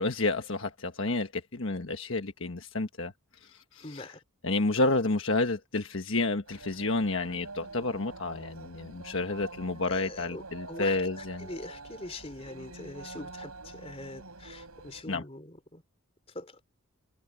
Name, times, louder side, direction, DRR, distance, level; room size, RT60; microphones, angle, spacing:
voice 1, 0.0-3.1 3.5-4.1 4.4-11.5 15.1-15.2, left 2 dB, 60° left, 1.4 m, -30 dB
voice 2, 3.8-4.2 9.8-15.8 16.3-16.6, left 2 dB, 25° left, 3.5 m, -43 dB
sound 1, 6.5-15.0, right 3 dB, 80° right, 6.9 m, -46 dB
head